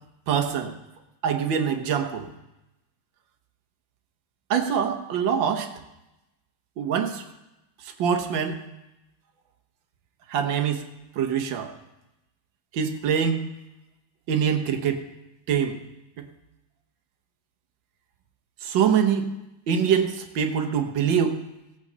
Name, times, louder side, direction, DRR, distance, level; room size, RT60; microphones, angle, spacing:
voice 1, 0.3-0.7 1.2-2.3 4.5-5.7 6.8-7.2 7.8-8.6 10.3-10.9 11.2-11.7 12.7-13.4 14.3-15.1 15.5-15.8 16.2-16.3 18.6-19.4 19.7-21.4, right 7 dB, 80° right, 6 dB, 1.7 m, -24 dB
17.5 x 8.5 x 4.0 m, 0.96 s
omnidirectional pair, 2.1 m